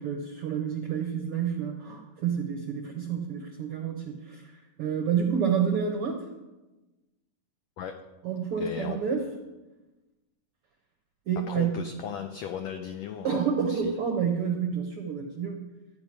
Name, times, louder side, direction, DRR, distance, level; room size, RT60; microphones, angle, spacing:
voice 1, 0.0-4.5 4.8-6.3 8.2-9.2 11.3-11.8 13.2-15.6, right 7 dB, 70° right, 4 dB, 1.3 m, -29 dB
voice 2, 8.6-9.0 11.5-13.3 13.7-13.9, left 8 dB, 85° left, 6 dB, 1.5 m, -36 dB
14.0 x 5.4 x 9.5 m, 1.1 s
omnidirectional pair, 3.9 m